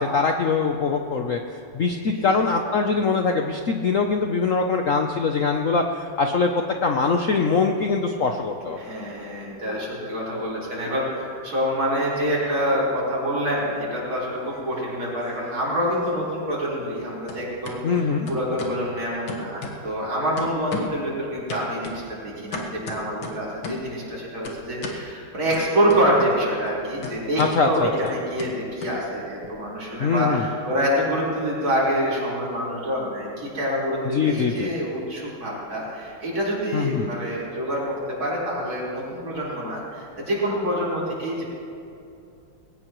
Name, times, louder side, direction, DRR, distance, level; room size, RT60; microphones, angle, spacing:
voice 1, 0.0-1.4 1.7-6.5 6.8-8.8 17.8-18.3 27.4-27.9 30.0-30.5 34.1-34.7 36.7-37.1, left 4 dB, 60° left, 3 dB, 0.8 m, -22 dB
voice 2, 8.8-41.4, equal, 70° right, -7 dB, 5.2 m, -26 dB
sound 1, 14.1-15.1 15.4-17.0 17.3-17.8 18.3-18.8 19.3-20.1 20.4-21.0 21.5-23.9 24.4-25.0 25.5-26.4 26.6-29.5, left 2 dB, 80° left, 2.3 m, -36 dB
20.5 x 18.0 x 3.1 m, 2.7 s
omnidirectional pair, 2.3 m